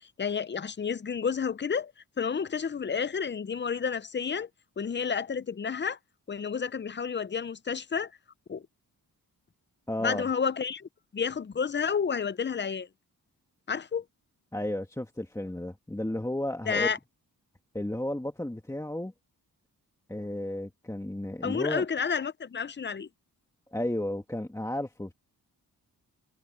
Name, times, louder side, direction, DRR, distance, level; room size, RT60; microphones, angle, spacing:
voice 1, 0.2-4.5 4.8-6.0 6.3-8.1 8.5-8.6 10.0-12.9 13.7-14.0 16.7-17.0 21.4-23.1, left 6 dB, 30° left, 0.6 m, -30 dB
voice 2, 9.9-10.3 14.5-16.9 17.7-19.1 20.1-21.9 23.7-25.1, left 1 dB, 10° left, 1.7 m, -33 dB
wide cardioid pair, 100°, 37 cm